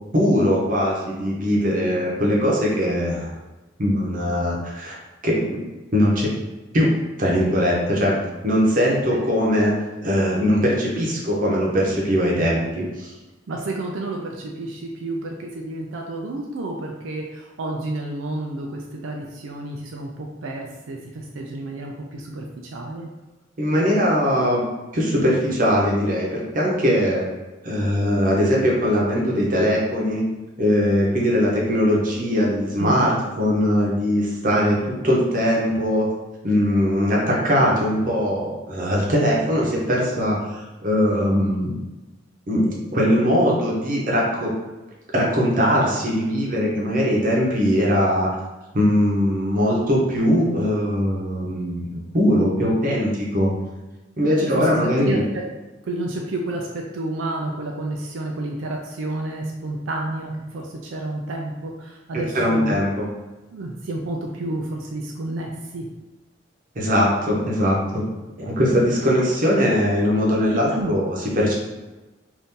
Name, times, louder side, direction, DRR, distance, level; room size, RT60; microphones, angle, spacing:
voice 1, 0.1-3.3 3.8-5.0 5.2-5.4 5.9-6.3 6.7-6.9 7.2-8.2 8.4-9.7 10.0-13.1 23.6-24.7 24.9-27.2 27.6-30.2 30.6-36.1 36.4-41.7 42.5-44.5 45.1-48.3 48.7-53.5 54.2-55.2 62.1-63.1 66.7-68.0 68.4-71.5, equal, 45° right, -3 dB, 0.8 m, -20 dB
voice 2, 13.5-23.1 32.8-33.2 54.4-55.4 55.8-62.8 63.5-65.9 70.5-70.9, right 2 dB, 85° right, 0 dB, 0.4 m, -30 dB
2.7 x 2.6 x 3.6 m, 1.1 s
head